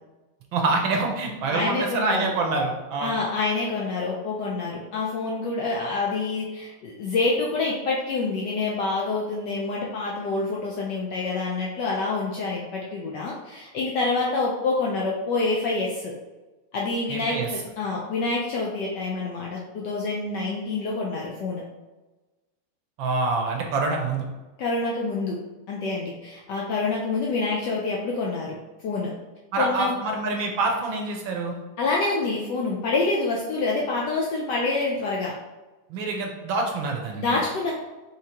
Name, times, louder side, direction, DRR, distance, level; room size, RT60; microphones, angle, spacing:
voice 1, 0.5-3.2 17.1-17.5 23.0-24.3 29.5-31.6 35.9-37.3, right 3 dB, 70° right, 2 dB, 1.3 m, -26 dB
voice 2, 1.5-2.3 3.0-16.1 16.7-21.6 24.6-25.4 25.7-28.6 28.8-29.1 29.6-29.9 31.8-35.3 37.2-37.7, left 3 dB, 70° left, -3 dB, 1.0 m, -27 dB
5.7 x 3.2 x 2.8 m, 1.1 s
omnidirectional pair, 2.4 m